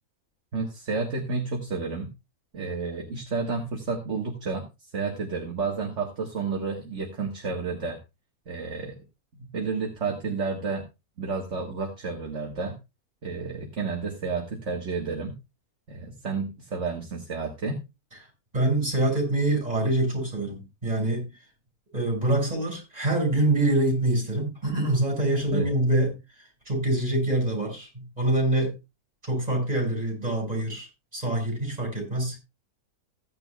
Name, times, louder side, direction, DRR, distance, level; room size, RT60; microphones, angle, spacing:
voice 1, 0.5-2.1 2.5-4.7 4.9-8.0 8.5-9.0 9.4-10.9 11.2-12.8 13.2-15.4 15.9-17.8 25.5-25.7, right 4 dB, 50° right, 1.9 m, -31 dB
voice 2, 18.5-21.3 21.9-26.1 26.7-28.7 29.2-30.9 31.1-32.4, right 1 dB, 25° right, 5.9 m, -25 dB
16.0 x 9.9 x 2.3 m
omnidirectional pair, 1.6 m